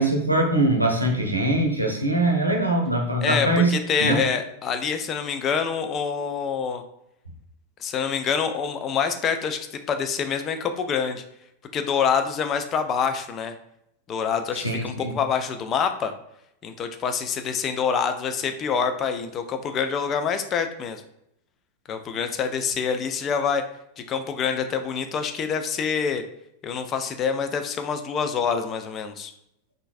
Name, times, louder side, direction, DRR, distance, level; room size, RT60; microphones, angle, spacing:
voice 1, 0.0-3.7 4.0-4.2 14.5-15.1, right 1 dB, 85° right, 2 dB, 0.6 m, -22 dB
voice 2, 3.2-6.8 7.8-11.2 11.7-13.5 14.1-16.1 16.6-21.0 21.9-23.6 24.1-26.2 26.6-29.3, left 6 dB, 30° left, 7 dB, 0.3 m, -26 dB
3.7 x 2.5 x 2.5 m, 0.78 s
figure-of-eight pair, 90°, 0 cm